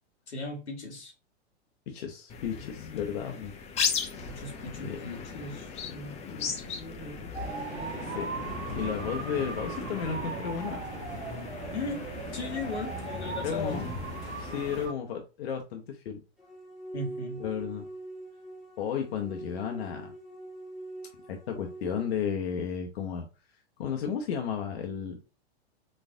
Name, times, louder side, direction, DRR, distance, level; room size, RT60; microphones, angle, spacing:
voice 1, 0.3-1.1 4.3-8.4 11.7-13.7 16.9-17.4, left 3 dB, 90° left, 1.2 m, -38 dB
voice 2, 1.9-3.5 4.8-5.0 8.0-8.3 8.8-10.8 13.4-13.8 14.4-16.2 17.4-17.9 18.8-20.1 21.3-23.3 23.8-25.1, left 7 dB, 70° left, 0.8 m, -33 dB
sound 1, 2.3-14.9, left 5 dB, 20° left, 0.5 m, -37 dB
sound 2, 7.3-14.9, right 6 dB, 85° right, 0.6 m, -39 dB
sound 3, 16.4-22.2, right 2 dB, ahead, 1.1 m, -43 dB
4.1 x 2.5 x 2.5 m
hypercardioid pair, 110°, 33 cm